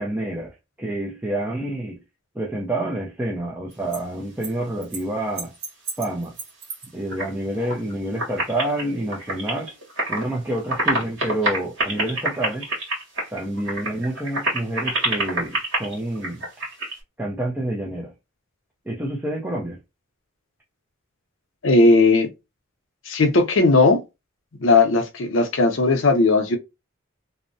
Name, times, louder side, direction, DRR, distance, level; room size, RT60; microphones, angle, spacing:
voice 1, 0.0-2.0 2.4-5.5 6.0-6.3 6.9-9.7 10.1-12.7 13.3-16.5 17.2-18.1 18.9-19.8, right 1 dB, 10° right, 0.4 m, -28 dB
sound 1, 3.7-4.0 4.4-4.5 4.8-5.0 5.4-7.3 7.5-7.9 8.2-10.3 10.6-17.0, right 1 dB, 65° right, 1.3 m, -27 dB
voice 2, 21.6-22.3 23.1-24.0 24.6-26.6, left 3 dB, 65° left, 0.6 m, -17 dB
2.6 x 2.1 x 2.6 m
head